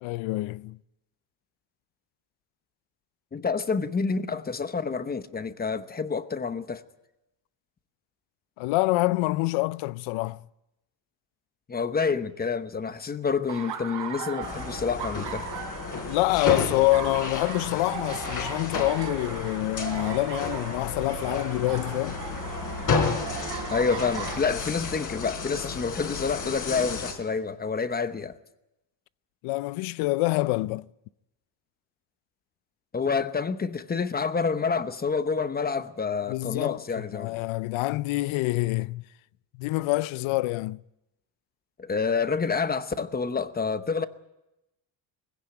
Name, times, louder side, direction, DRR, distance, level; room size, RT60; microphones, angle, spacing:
voice 1, 0.0-0.8 8.6-10.4 16.1-22.2 29.4-30.8 36.3-39.0 39.6-40.8, left 20 dB, 85° left, 0.7 m, -26 dB
voice 2, 3.3-6.8 11.7-15.5 23.7-28.3 32.9-37.4 41.8-44.1, left 5 dB, 20° left, 0.9 m, -28 dB
Laughter, 13.5-24.4, right 7 dB, 65° right, 3.4 m, -38 dB
sound 1, 14.4-27.1, left 4 dB, 40° left, 4.0 m, -32 dB
20.5 x 16.0 x 9.0 m
cardioid pair, 130°, 46 cm